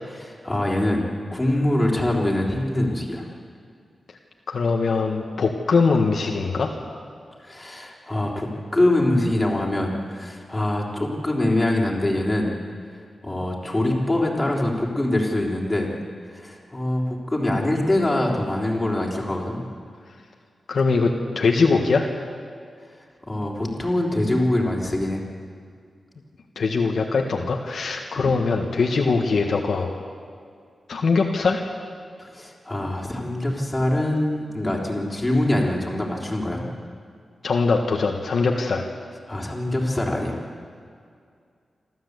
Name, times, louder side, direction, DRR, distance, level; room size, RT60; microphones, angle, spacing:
voice 1, 0.2-1.0 1.3-3.2 7.4-12.5 13.2-15.9 16.3-19.6 23.3-25.2 28.2-28.3 32.2-36.6 39.3-40.4, left 1 dB, 15° left, -2 dB, 3.6 m, -24 dB
voice 2, 4.5-6.7 20.7-22.1 26.5-30.0 30.9-31.6 37.4-38.8, left 4 dB, 65° left, 2 dB, 1.5 m, -22 dB
27.0 x 13.0 x 8.2 m, 2.2 s
wide cardioid pair, 130°, 0 cm